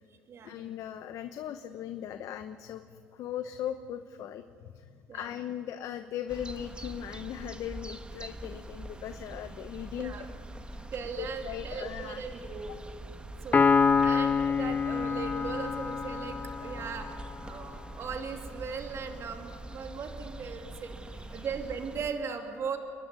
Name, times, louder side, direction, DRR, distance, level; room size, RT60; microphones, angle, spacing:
voice 1, 0.4-10.3 10.7-10.9 11.2-12.2 21.3-21.4, left 10 dB, 65° left, 8 dB, 0.9 m, -39 dB
sound 1, 6.3-22.1, right 2 dB, 15° right, 1.4 m, -44 dB
voice 2, 10.9-12.7 13.4-20.9 21.3-22.8, right 6 dB, 50° right, 4 dB, 2.8 m, -38 dB
Piano, 13.5-17.1, left 5 dB, 25° left, 0.5 m, -26 dB
29.5 x 11.5 x 9.6 m, 2.5 s
supercardioid pair, 90°, 6 cm